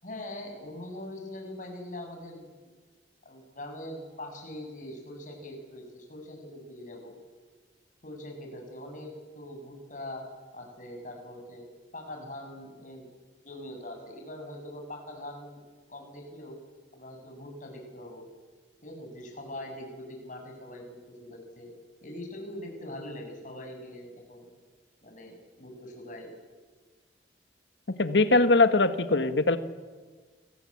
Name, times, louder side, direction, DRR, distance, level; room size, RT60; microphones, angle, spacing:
voice 1, 0.0-2.7 3.3-7.1 8.0-10.2 10.5-11.6 11.9-13.1 13.4-15.6 15.9-16.6 16.9-18.2 18.8-21.7 22.0-24.5 25.0-26.3, left 1 dB, 45° left, 2 dB, 7.0 m, -42 dB
voice 2, 28.0-29.6, left 3 dB, 70° left, 11 dB, 1.6 m, -21 dB
29.0 x 20.5 x 8.7 m, 1.4 s
head